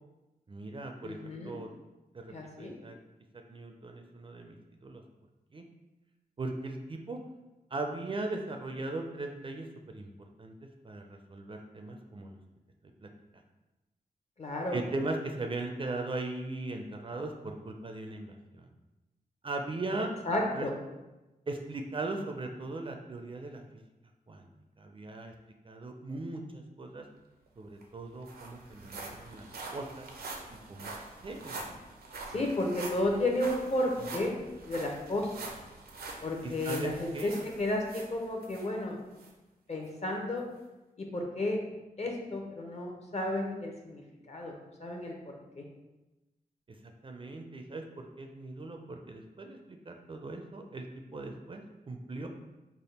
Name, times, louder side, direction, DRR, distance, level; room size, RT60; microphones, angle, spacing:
voice 1, 0.5-1.7 2.1-3.0 3.5-4.6 4.8-5.0 5.5-5.7 6.4-7.2 7.7-10.1 10.4-10.5 10.8-12.4 13.0-13.1 14.7-18.7 19.4-20.1 20.5-20.7 21.5-23.6 24.3-24.5 24.8-25.3 25.6-27.0 27.6-30.1 30.7-31.0 31.2-31.6 32.3-32.5 34.0-34.3 36.4-37.4 47.0-52.3, right 2 dB, 35° right, 3 dB, 0.4 m, -39 dB
voice 2, 1.0-1.6 2.3-2.7 14.4-14.8 20.3-20.7 32.3-34.4 34.6-35.3 36.2-37.3 37.6-39.0 39.7-40.4 41.0-41.6 42.0-44.5 44.8-45.6, left 1 dB, 45° left, 1 dB, 0.7 m, -32 dB
sound 1, 27.5-27.6 27.8-38.7 39.2-39.3 39.9-40.0, right 3 dB, 85° right, 0.5 m, -45 dB
3.4 x 2.1 x 4.1 m, 1.0 s
wide cardioid pair, 80°, 15 cm